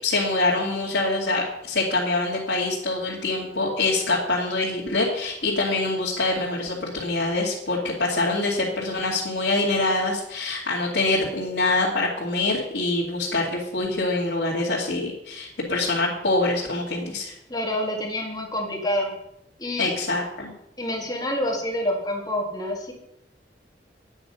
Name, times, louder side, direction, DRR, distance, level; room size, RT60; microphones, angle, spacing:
voice 1, 0.0-17.3 19.8-20.5, left 2 dB, 75° left, -5 dB, 2.3 m, -25 dB
voice 2, 17.5-19.1 19.6-19.9 20.8-22.9, left 1 dB, 20° left, 0 dB, 2.1 m, -27 dB
11.0 x 8.9 x 5.6 m, 0.80 s
head